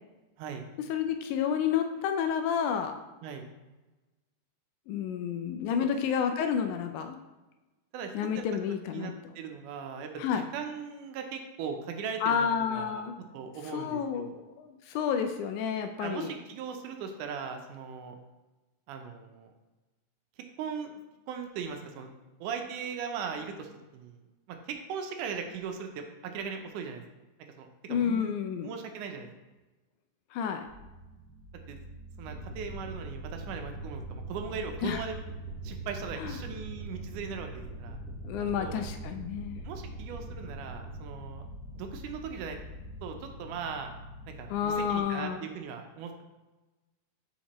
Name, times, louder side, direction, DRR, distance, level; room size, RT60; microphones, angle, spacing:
voice 1, 0.9-2.9 4.9-7.2 8.2-9.1 10.2-10.4 12.2-13.1 13.7-16.3 27.9-28.7 30.3-30.7 34.8-35.0 36.2-36.3 38.2-39.6 44.5-45.4, left 7 dB, 80° left, 6 dB, 1.9 m, -30 dB
voice 2, 7.9-8.4 8.9-10.3 10.5-13.0 13.3-14.4 16.0-18.2 18.9-19.5 20.6-21.0 21.3-22.1 22.4-24.2 24.5-27.0 27.6-28.3 28.6-29.3 31.7-31.8 32.2-35.2 35.6-38.0 38.4-38.9 39.6-41.5 41.7-42.6 43.0-43.9 44.3-46.2, right 6 dB, 80° right, 5 dB, 2.2 m, -39 dB
sound 1, 30.6-43.1, equal, 45° right, 1.0 m, -48 dB
sound 2, 32.2-45.0, right 1 dB, 15° left, 0.4 m, -43 dB
7.2 x 4.9 x 3.0 m, 1.1 s
omnidirectional pair, 3.7 m